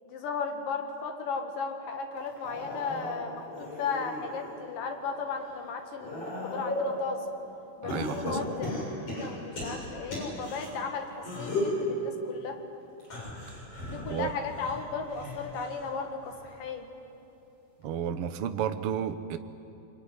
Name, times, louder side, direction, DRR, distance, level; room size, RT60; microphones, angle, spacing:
voice 1, 0.1-7.3 7.8-12.6 13.9-16.9, left 5 dB, 75° left, 5 dB, 3.5 m, -35 dB
sound 1, 2.2-4.6 5.1-7.0 7.9-10.7 11.2-11.8 13.0-15.9 16.2-16.7 17.8-17.9, left 1 dB, 45° left, 7.7 m, -36 dB
voice 2, 7.8-8.5 14.1-14.3 17.8-19.4, right 9 dB, 70° right, 9 dB, 1.4 m, -32 dB
25.0 x 23.0 x 9.8 m, 2.9 s
omnidirectional pair, 3.9 m